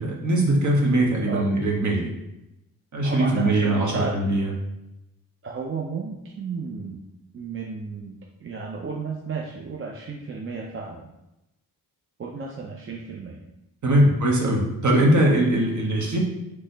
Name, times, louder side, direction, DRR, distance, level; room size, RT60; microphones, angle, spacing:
voice 1, 0.0-2.1 2.9-4.5 13.8-16.2, right 1 dB, 50° right, -2 dB, 1.3 m, -21 dB
voice 2, 3.0-4.4 5.4-7.0 7.3-11.1 12.2-13.4 13.9-14.2, right 4 dB, 35° right, -1 dB, 0.5 m, -33 dB
4.2 x 3.2 x 3.9 m, 0.93 s
wide cardioid pair, 115°, 37 cm